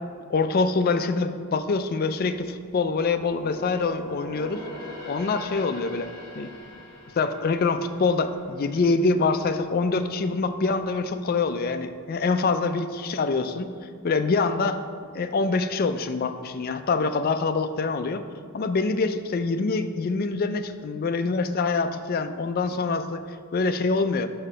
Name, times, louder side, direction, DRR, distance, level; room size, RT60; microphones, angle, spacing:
voice 1, 0.3-4.6 5.1-6.1 6.4-6.5 7.2-13.7 14.0-14.8 15.1-18.2 18.5-23.2 23.5-24.3, left 4 dB, 40° left, 9 dB, 0.3 m, -25 dB
sound 1, 2.2-9.5 9.9-10.1 10.7-11.4 11.7-11.8, left 1 dB, 20° left, 1.8 m, -43 dB
5.6 x 4.9 x 5.5 m, 2.1 s
head